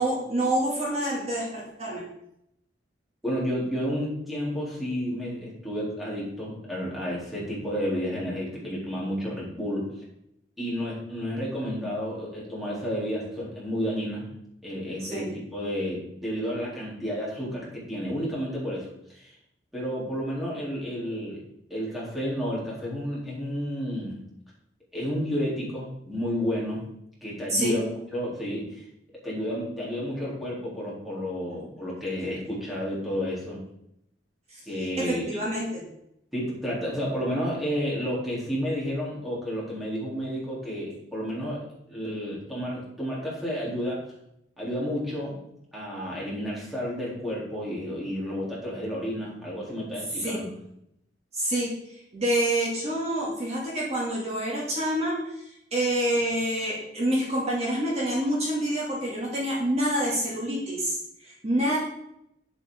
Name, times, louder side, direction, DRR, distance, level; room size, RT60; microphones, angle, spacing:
voice 1, 0.0-2.0 15.0-15.3 27.5-27.7 34.5-34.6 35.0-35.8 50.1-50.4 51.3-61.8, right 1 dB, 35° right, -5 dB, 2.7 m, -27 dB
voice 2, 3.2-9.9 10.6-14.3 14.6-19.3 19.7-21.4 21.7-24.2 24.9-26.8 27.2-28.9 29.2-33.6 34.7-35.2 36.3-44.1 44.6-45.4 45.7-50.5, equal, ahead, -7 dB, 3.6 m, -31 dB
9.8 x 8.4 x 3.9 m, 0.78 s
head